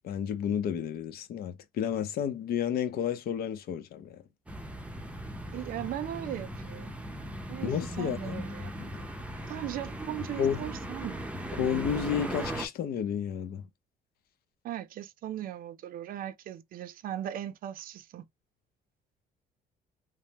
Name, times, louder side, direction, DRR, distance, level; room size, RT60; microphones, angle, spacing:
voice 1, 0.0-4.2 7.6-8.4 8.8-9.1 10.4-10.6 11.6-13.7, left 8 dB, 65° left, 0.7 m, -31 dB
sound 1, 4.5-12.7, right 1 dB, 5° right, 0.6 m, -38 dB
voice 2, 5.5-6.9 7.5-8.7 9.5-11.2 14.6-18.2, right 12 dB, 60° right, 0.5 m, -38 dB
3.2 x 2.1 x 2.9 m
cardioid pair, 110°, 17 cm